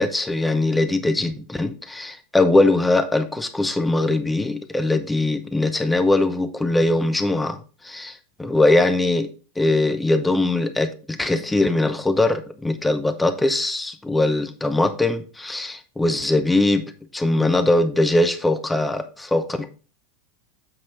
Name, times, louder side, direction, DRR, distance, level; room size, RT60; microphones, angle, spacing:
voice 1, 0.0-7.6 7.8-9.3 9.6-16.8 17.1-19.7, left 2 dB, 10° left, 8 dB, 0.7 m, -21 dB
7.7 x 4.1 x 4.5 m, 0.35 s
hypercardioid pair, 90°, 0 cm